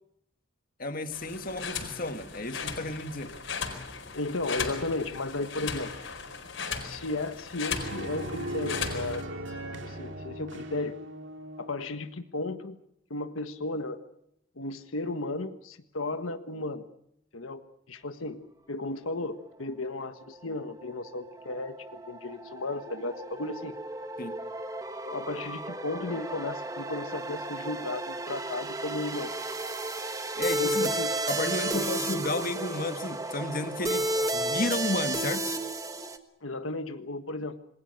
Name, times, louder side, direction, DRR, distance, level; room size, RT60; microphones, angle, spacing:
voice 1, 0.8-3.4 24.2-24.4 30.4-30.9 31.3-35.6, left 2 dB, 45° left, 8 dB, 1.8 m, -32 dB
sound 1, 1.1-9.2, left 5 dB, 65° left, 4.5 m, -37 dB
voice 2, 4.1-5.9 6.8-9.2 9.8-11.0 11.6-12.8 13.1-14.0 14.6-16.9 17.3-17.6 17.9-18.4 18.7-23.7 25.0-29.3 30.6-31.1 31.7-32.2 36.4-37.6, left 2 dB, 85° left, 8 dB, 1.5 m, -34 dB
sound 2, 7.7-11.9, right 1 dB, 60° right, 2.5 m, -38 dB
sound 3, 19.9-36.2, right 2 dB, 15° right, 1.4 m, -33 dB
27.5 x 21.0 x 6.5 m, 0.74 s
head